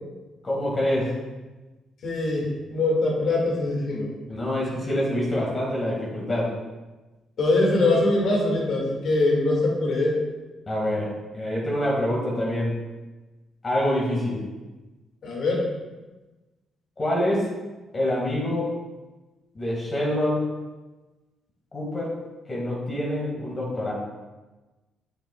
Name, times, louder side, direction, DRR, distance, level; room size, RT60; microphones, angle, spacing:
voice 1, 0.4-1.1 4.3-6.5 10.7-11.1 11.3-12.7 13.6-14.4 17.0-17.5 17.9-18.7 19.5-20.4 21.7-22.1 22.5-23.9, left 1 dB, 30° left, -4 dB, 2.0 m, -26 dB
voice 2, 2.0-4.2 7.4-10.2 15.2-15.6, left 2 dB, 65° left, -2 dB, 2.1 m, -23 dB
7.8 x 7.0 x 2.4 m, 1.2 s
cardioid pair, 90°, 0 cm